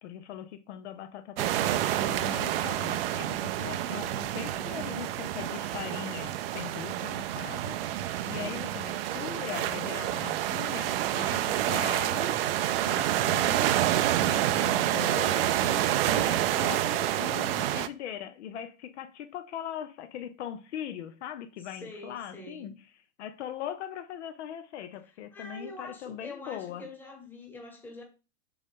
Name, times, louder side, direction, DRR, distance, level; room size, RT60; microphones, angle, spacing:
voice 1, 0.0-12.4 12.7-13.7 14.2-22.7 23.2-26.9, left 10 dB, 65° left, 0.8 m, -40 dB
sound 1, 1.4-17.9, right 12 dB, 50° right, 0.5 m, -28 dB
voice 2, 3.7-4.8 8.2-8.6 21.6-22.8 25.3-28.0, left 2 dB, 5° left, 1.2 m, -45 dB
7.0 x 3.9 x 3.7 m
supercardioid pair, 150°, 37 cm